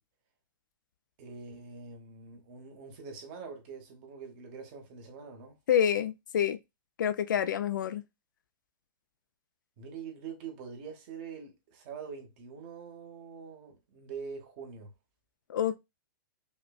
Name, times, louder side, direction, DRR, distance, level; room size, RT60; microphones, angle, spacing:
voice 1, 1.2-5.6 9.8-14.9, right 6 dB, 25° right, 0.8 m, -44 dB
voice 2, 5.7-6.6 7.0-8.0 15.5-15.8, left 9 dB, 60° left, 0.4 m, -27 dB
5.2 x 2.1 x 2.2 m
hypercardioid pair, 175°, 11 cm